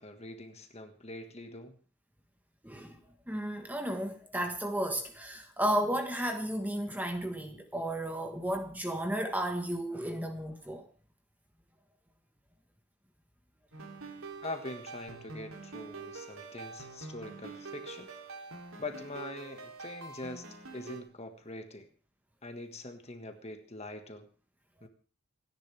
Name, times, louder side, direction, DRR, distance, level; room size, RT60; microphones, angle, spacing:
voice 1, 0.0-1.8 14.4-18.1 18.8-20.5 20.7-21.9 22.4-24.3 24.8-24.9, left 2 dB, 30° left, 1.6 m, -43 dB
voice 2, 2.6-3.0 3.3-10.8, right 1 dB, 10° right, 1.3 m, -33 dB
sound 1, 13.7-21.0, right 4 dB, 80° right, 3.0 m, -45 dB
27.5 x 10.5 x 3.4 m
head